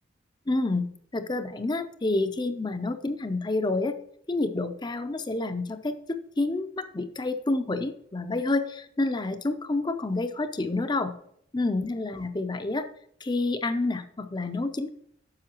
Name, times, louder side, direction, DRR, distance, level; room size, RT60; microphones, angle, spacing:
voice 1, 0.5-0.8 1.1-4.0 4.3-11.1 11.5-12.9 13.2-14.9, left 2 dB, 25° left, 10 dB, 0.5 m, -28 dB
9.7 x 6.8 x 2.9 m, 0.68 s
head